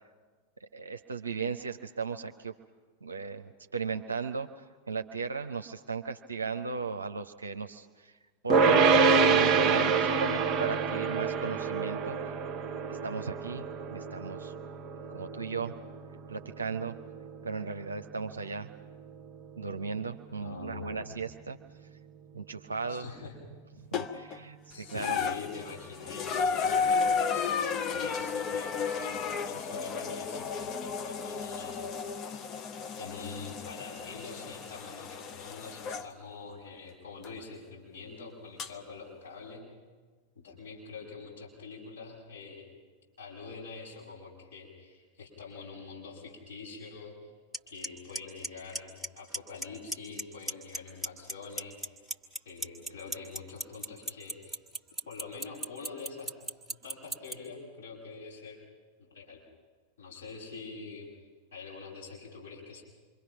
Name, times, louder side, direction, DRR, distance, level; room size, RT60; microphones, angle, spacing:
voice 1, 0.6-2.5 3.0-8.1 8.4-12.3 12.9-13.7 13.9-14.5 15.1-15.7 16.3-16.9 17.4-18.7 19.6-21.6 22.3-23.0 23.8-25.2, right 5 dB, 75° right, 5 dB, 0.6 m, -36 dB
sound 1, 8.5-19.8, right 5 dB, 25° right, 1.1 m, -27 dB
voice 2, 20.4-21.2 22.9-23.4 24.7-27.1 27.7-32.4 33.0-39.7 40.4-42.7 43.2-47.1 47.7-51.8 52.5-54.6 55.1-56.3 56.7-58.6 59.0-59.4 60.0-61.1 61.5-62.8, left 4 dB, 70° left, -4 dB, 7.0 m, -45 dB
sound 2, 23.9-24.4 24.9-36.1 37.2-37.3 38.6-38.7, left 5 dB, 30° left, 0.8 m, -33 dB
Clock, 47.5-47.6 47.8-48.2 48.4-49.1 49.3-49.6 49.9-50.8 51.0-57.3, right 1 dB, 5° right, 1.5 m, -33 dB
27.5 x 23.5 x 6.0 m, 1.4 s
figure-of-eight pair, 90°, 0 cm